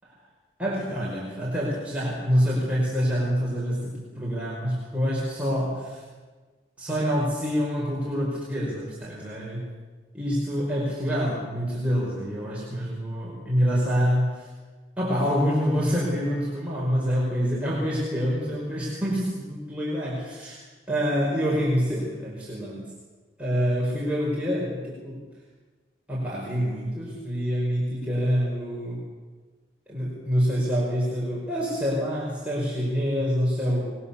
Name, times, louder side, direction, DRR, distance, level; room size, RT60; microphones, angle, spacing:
voice 1, 0.6-6.0 6.8-9.6 10.1-14.5 15.0-20.6 20.9-22.9 23.4-25.2 26.1-29.1 29.9-34.0, equal, 5° right, -6 dB, 5.1 m, -26 dB
25.5 x 21.5 x 7.1 m, 1.4 s
head